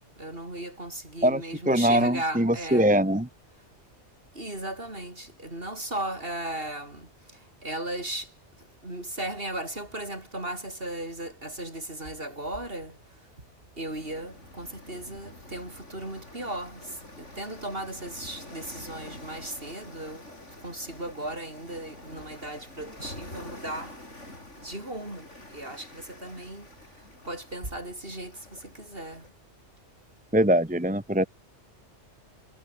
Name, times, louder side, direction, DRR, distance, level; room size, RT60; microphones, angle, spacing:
voice 1, 0.2-2.9 4.3-7.1 7.6-8.3 8.8-12.9 13.8-16.8 17.2-20.2 20.6-23.9 24.6-25.3 25.5-26.7 27.3-29.2, right 1 dB, 50° right, 6.9 m, -36 dB
voice 2, 1.7-3.3 30.3-31.3, equal, 5° right, 1.3 m, -22 dB
sound 1, 13.9-29.3, left 1 dB, 85° left, 7.1 m, -47 dB
omnidirectional pair, 1.2 m